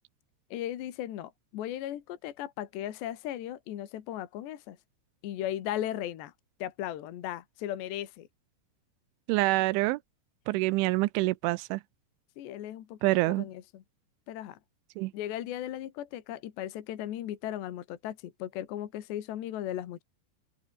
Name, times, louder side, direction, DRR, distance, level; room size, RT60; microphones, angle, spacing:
voice 1, 0.5-4.8 5.2-6.3 6.6-8.3 12.4-13.8 14.3-14.6 15.1-20.0, left 12 dB, 70° left, 3.9 m, -37 dB
voice 2, 9.3-10.0 10.5-11.8 13.0-13.5 15.0-15.1, right 21 dB, 85° right, 3.1 m, -26 dB
open air
omnidirectional pair, 5.4 m